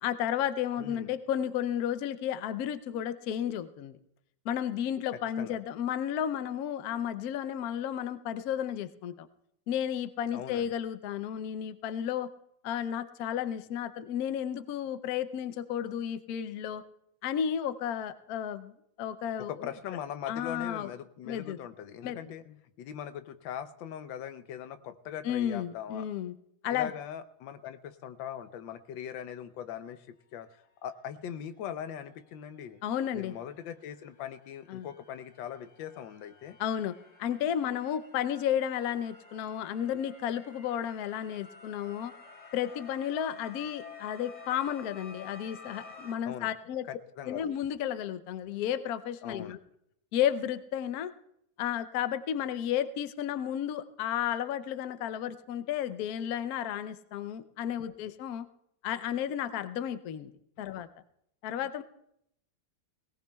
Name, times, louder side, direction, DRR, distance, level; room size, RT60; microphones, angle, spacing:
voice 1, 0.0-4.0 4.4-9.3 9.7-12.3 12.6-16.8 17.2-18.7 19.0-19.7 20.3-20.9 21.3-21.6 22.0-22.2 25.2-26.3 26.6-26.9 32.8-33.3 34.7-34.9 36.6-36.9 37.2-42.1 42.5-46.9 47.2-49.6 50.1-51.1 51.6-58.5 58.8-60.3 60.6-60.9 61.4-61.8, left 10 dB, 65° left, 11 dB, 1.0 m, -32 dB
voice 2, 0.8-1.1 5.1-5.6 10.3-10.7 19.4-22.4 22.8-26.1 26.7-32.8 33.1-36.6 46.2-46.5 46.9-47.4 49.2-49.6 60.6-60.7, left 9 dB, 85° left, 11 dB, 1.4 m, -41 dB
sound 1, 31.6-31.7 32.1-46.1, left 4 dB, 45° left, 1.9 m, -52 dB
21.0 x 18.0 x 2.3 m, 0.75 s
omnidirectional pair, 2.0 m